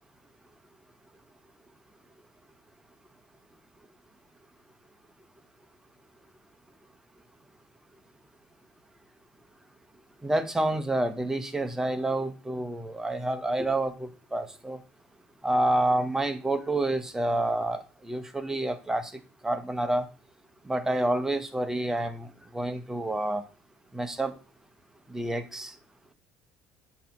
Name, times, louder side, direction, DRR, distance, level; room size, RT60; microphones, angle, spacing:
voice 1, 10.2-14.8 15.4-19.1 19.4-20.1 20.6-23.4 23.9-24.3 25.1-25.7, right 1 dB, 10° right, 8 dB, 0.8 m, -28 dB
8.1 x 2.9 x 4.5 m, 0.34 s
cardioid pair, 115°, 6 cm